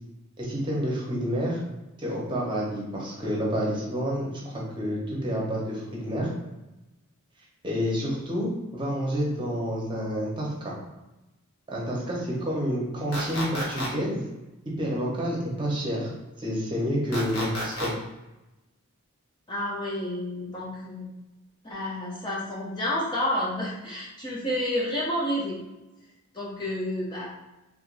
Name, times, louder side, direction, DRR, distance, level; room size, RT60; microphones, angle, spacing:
voice 1, 0.4-1.6 2.0-6.3 7.6-10.7 11.7-14.2 14.8-16.1 16.4-17.9, equal, 20° right, -4 dB, 0.9 m, -29 dB
sound 1, 13.1-13.9 17.1-17.9, equal, 70° left, 1.3 m, -31 dB
voice 2, 19.5-21.1 21.6-25.6 26.3-27.3, left 1 dB, 20° left, -5 dB, 0.6 m, -30 dB
3.4 x 3.3 x 2.5 m, 1.0 s
head